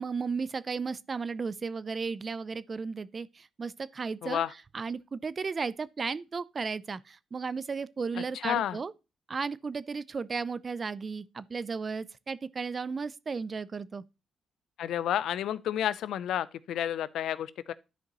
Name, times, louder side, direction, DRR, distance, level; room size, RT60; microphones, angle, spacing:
voice 1, 0.0-4.4 4.7-8.9 9.3-14.0, right 5 dB, 40° right, 0.4 m, -34 dB
voice 2, 4.2-4.5 8.2-8.8 14.8-17.7, left 10 dB, 80° left, 0.4 m, -31 dB
12.0 x 5.0 x 3.0 m
cardioid pair, 70°, 0 cm